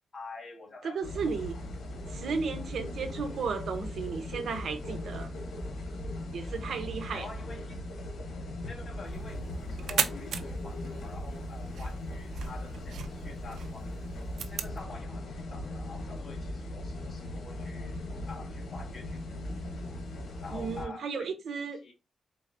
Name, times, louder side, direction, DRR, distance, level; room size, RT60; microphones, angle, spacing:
voice 1, 0.1-1.3 7.1-8.1 8.6-13.9 14.4-18.0 18.3-19.6 20.4-21.3 21.8-21.9, left 3 dB, 45° left, 1.6 m, -47 dB
voice 2, 0.8-1.6 2.1-5.3 6.3-7.3 20.5-21.8, right 5 dB, 70° right, 0.9 m, -34 dB
sound 1, 1.0-20.9, left 1 dB, 85° left, 1.2 m, -39 dB
sound 2, 9.0-14.8, right 7 dB, 90° right, 0.5 m, -37 dB
4.0 x 4.0 x 2.6 m
wide cardioid pair, 120°, 0 cm